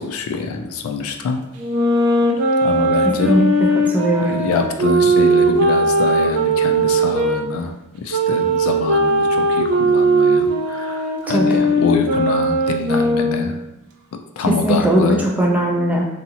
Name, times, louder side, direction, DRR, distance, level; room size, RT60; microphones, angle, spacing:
voice 1, 0.0-1.4 2.6-3.4 4.2-13.6 14.1-15.3, left 4 dB, 70° left, 5 dB, 0.3 m, -25 dB
sound 1, 1.6-7.4 8.1-13.6, right 1 dB, 85° right, 0.4 m, -18 dB
voice 2, 3.7-4.4 11.3-11.7 14.6-16.1, right 1 dB, 5° right, -1 dB, 0.4 m, -18 dB
2.8 x 2.3 x 2.7 m, 0.92 s
head